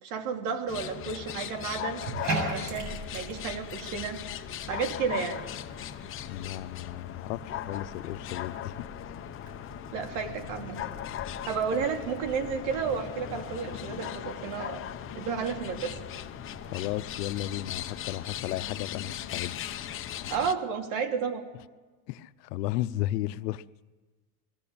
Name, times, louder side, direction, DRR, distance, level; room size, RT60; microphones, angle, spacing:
voice 1, 0.0-2.0 2.5-5.4 9.9-10.8 11.4-14.8 15.1-15.9 20.3-21.5, right 6 dB, 60° right, 3.1 m, -32 dB
sound 1, 0.7-20.5, left 11 dB, 25° left, 0.9 m, -38 dB
Bathtub (filling or washing), 2.0-20.3, right 2 dB, 35° right, 7.4 m, -43 dB
voice 2, 6.3-8.7 16.7-19.5 20.2-20.3 22.1-23.6, left 15 dB, 80° left, 0.9 m, -34 dB
22.0 x 16.5 x 8.7 m
supercardioid pair, 145°, 48 cm